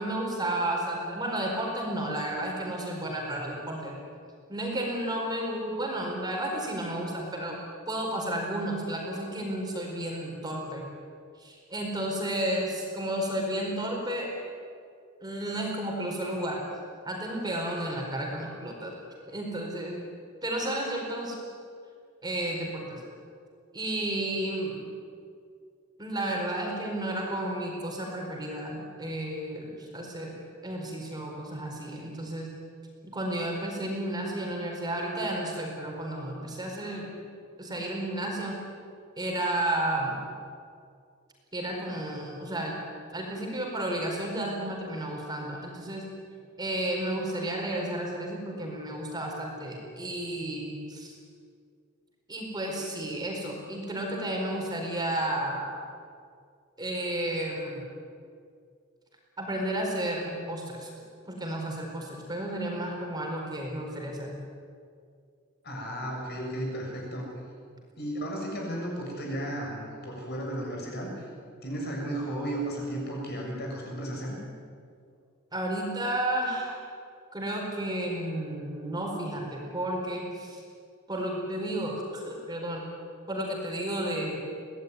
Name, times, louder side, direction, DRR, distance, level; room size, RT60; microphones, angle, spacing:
voice 1, 0.0-4.0 4.5-7.6 7.9-10.9 11.4-14.3 15.2-16.6 17.0-18.9 19.3-20.0 20.4-21.4 22.2-23.0 23.7-24.8 26.0-30.3 30.6-32.5 33.0-37.1 37.6-38.6 39.2-40.2 41.5-42.8 43.1-46.1 46.6-51.2 52.3-55.7 56.8-57.8 59.4-60.9 61.3-64.4 75.5-76.8 77.3-80.6 81.1-82.9 83.3-84.4, right 1 dB, 20° right, 0 dB, 4.6 m, -32 dB
voice 2, 65.6-67.3 68.0-71.3 71.6-74.4, right 1 dB, 50° left, -1 dB, 7.0 m, -34 dB
23.5 x 17.5 x 9.7 m, 2.2 s
head